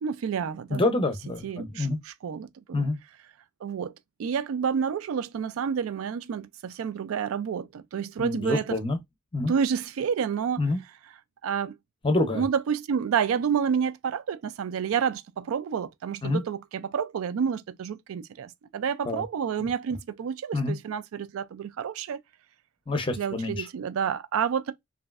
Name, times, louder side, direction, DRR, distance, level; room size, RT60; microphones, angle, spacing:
voice 1, 0.0-0.8 1.4-2.8 3.6-3.9 4.2-8.8 9.5-10.6 11.4-11.7 12.3-22.2 23.2-24.7, right 7 dB, 80° right, 0.3 m, -29 dB
voice 2, 0.7-2.0 2.7-3.0 8.2-9.0 9.3-9.5 10.6-10.8 12.0-12.4 16.2-16.4 19.0-19.2 20.5-20.8 22.9-23.7, left 2 dB, 25° left, 0.5 m, -27 dB
3.0 x 2.6 x 2.3 m
head